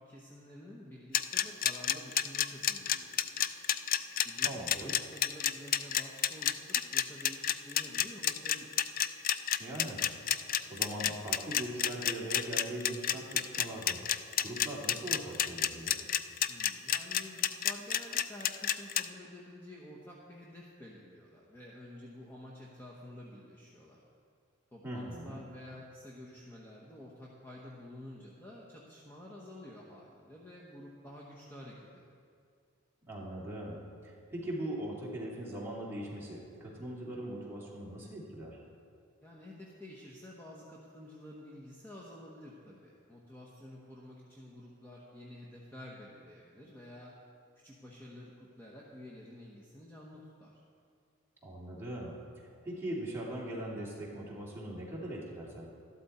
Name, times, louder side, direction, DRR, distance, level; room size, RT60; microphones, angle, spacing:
voice 1, 0.0-3.4 4.2-8.8 16.5-24.0 24.7-32.0 39.2-47.2 47.5-50.6, left 1 dB, 10° left, -5 dB, 1.0 m, -50 dB
sound 1, 1.1-19.0, left 10 dB, 40° left, 0.3 m, -29 dB
voice 2, 4.4-4.9 9.6-10.0 10.5-14.0 14.4-16.0 24.8-25.4 33.0-38.6 51.4-52.2 52.6-55.6, right 1 dB, 10° right, -6 dB, 2.5 m, -40 dB
13.0 x 11.5 x 4.3 m, 2.2 s
head